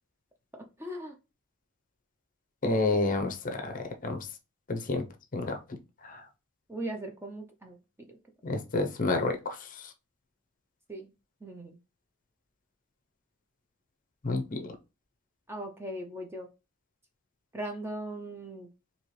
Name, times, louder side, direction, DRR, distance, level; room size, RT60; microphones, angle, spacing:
voice 1, 0.5-1.1 6.7-7.8 10.9-11.1 11.4-11.8 15.5-16.5 17.5-18.7, right 1 dB, 10° right, 0.5 m, -39 dB
voice 2, 2.6-4.3 4.7-5.1 5.3-5.6 6.0-6.2 8.4-9.9 14.2-14.7, left 2 dB, 35° left, 0.6 m, -30 dB
4.3 x 2.8 x 3.1 m
head